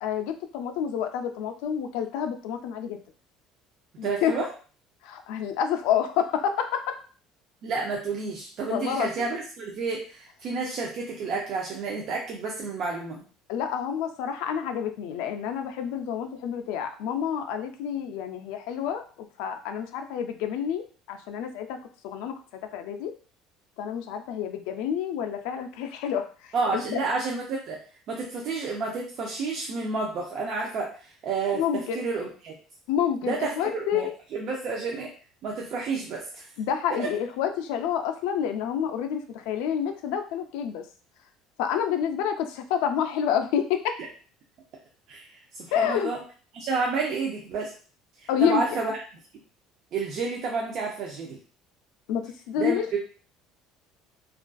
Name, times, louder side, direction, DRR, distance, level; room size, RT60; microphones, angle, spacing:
voice 1, 0.0-3.0 4.0-4.3 5.0-7.0 8.7-9.1 13.5-21.8 22.0-22.3 22.7-23.1 23.8-27.1 31.5-32.0 32.9-34.0 36.6-40.8 41.6-43.9 45.7-46.1 48.3-48.8 52.1-53.0, left 8 dB, 75° left, 6 dB, 0.3 m, -28 dB
voice 2, 4.0-4.5 7.6-13.2 26.5-27.8 28.1-31.6 31.9-32.5 33.2-35.1 35.4-36.5 37.0-37.1 45.1-46.2 46.5-47.7 48.2-48.9 49.9-51.4 52.6-53.0, right 4 dB, 45° right, -1 dB, 0.4 m, -30 dB
2.5 x 2.3 x 2.2 m, 0.39 s
cardioid pair, 165°, 0 cm